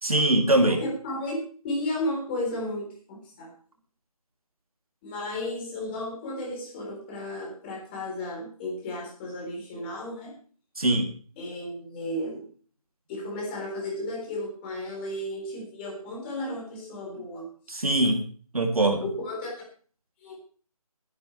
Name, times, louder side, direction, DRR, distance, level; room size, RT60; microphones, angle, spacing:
voice 1, 0.0-0.8 10.8-11.1 17.7-18.2 18.5-19.1, right 1 dB, 70° right, 4 dB, 2.8 m, -22 dB
voice 2, 0.7-3.5 5.0-10.4 11.4-12.5 13.1-17.4 19.0-19.5 20.2-20.3, left 1 dB, 15° left, -2 dB, 4.0 m, -34 dB
19.0 x 10.5 x 3.3 m, 0.42 s
figure-of-eight pair, 155°, 19 cm